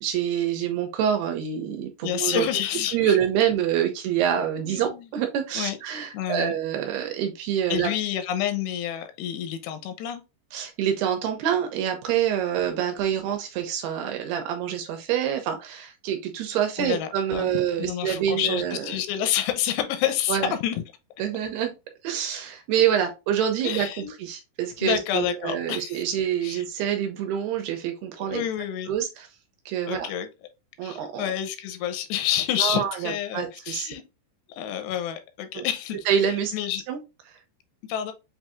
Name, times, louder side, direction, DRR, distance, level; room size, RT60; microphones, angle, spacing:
voice 1, 0.0-2.5 2.9-7.9 10.5-18.9 20.3-20.5 21.2-21.8 22.0-28.4 28.9-29.3 29.7-30.1 30.8-31.3 32.6-33.9 35.6-35.7 36.1-36.5 36.9-37.0 37.3-37.4, right 9 dB, 80° right, 2.5 m, -26 dB
voice 2, 2.0-3.2 4.7-5.1 5.6-5.8 6.1-6.5 7.7-10.2 16.8-17.5 17.8-20.8 23.6-24.1 24.8-26.0 26.4-26.6 28.3-28.9 29.9-30.3 30.8-34.0 34.5-36.0 36.5-36.8 37.9-38.1, left 10 dB, 85° left, 2.7 m, -28 dB
7.3 x 2.6 x 2.3 m
omnidirectional pair, 5.0 m